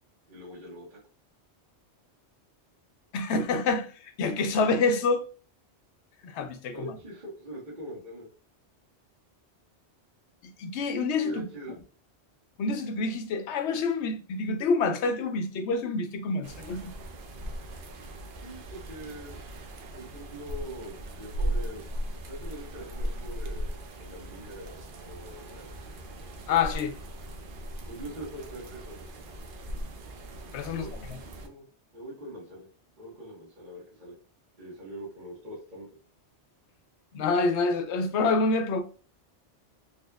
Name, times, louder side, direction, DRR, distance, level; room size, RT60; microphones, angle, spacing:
voice 1, 0.3-1.0 6.7-8.3 11.2-11.8 18.4-19.4 19.9-21.9 22.3-25.7 27.9-29.0 30.6-31.1 31.4-31.6 31.9-32.7 33.0-34.2 34.6-35.9, right 1 dB, 45° right, 1.4 m, -43 dB
voice 2, 3.1-5.3 6.2-6.9 10.4-11.4 12.6-16.9 26.5-26.9 30.5-31.2 37.1-38.8, left 4 dB, 75° left, 0.9 m, -27 dB
sound 1, 16.4-31.5, right 1 dB, 60° right, 0.7 m, -38 dB
4.0 x 2.9 x 2.3 m
omnidirectional pair, 1.2 m